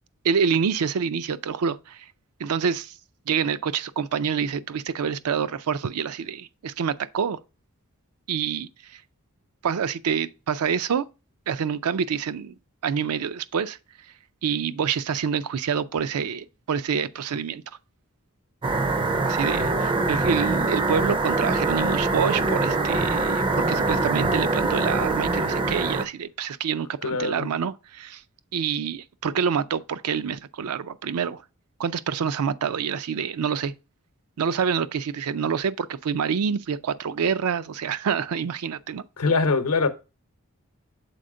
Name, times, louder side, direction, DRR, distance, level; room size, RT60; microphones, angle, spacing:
voice 1, 0.2-2.0 2.4-2.9 3.3-7.4 8.3-8.7 9.6-11.0 11.5-12.5 12.8-13.8 14.4-17.6 19.2-28.2 28.5-31.4 31.8-33.7 34.4-39.0, right 6 dB, 80° right, 0.4 m, -27 dB
sound 1, 18.6-26.1, right 3 dB, 20° right, 0.4 m, -24 dB
voice 2, 27.0-27.5 39.2-39.9, left 4 dB, 80° left, 0.8 m, -23 dB
6.6 x 4.2 x 3.7 m
head